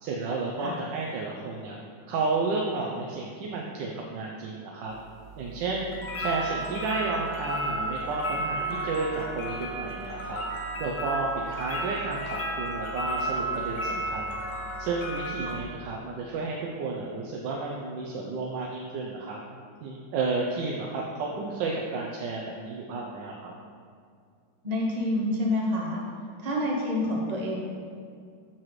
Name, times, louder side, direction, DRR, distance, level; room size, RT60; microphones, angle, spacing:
voice 1, 0.0-1.8 2.1-4.9 5.4-5.9 6.2-10.4 10.8-14.4 14.8-19.4 19.8-23.5, right 3 dB, 80° right, -1 dB, 1.3 m, -32 dB
sound 1, 4.9-15.6, right 1 dB, 70° left, 0.4 m, -33 dB
voice 2, 24.6-26.0 26.4-27.6, left 1 dB, 30° right, -2 dB, 0.7 m, -28 dB
7.5 x 5.7 x 3.1 m, 2.2 s
omnidirectional pair, 2.0 m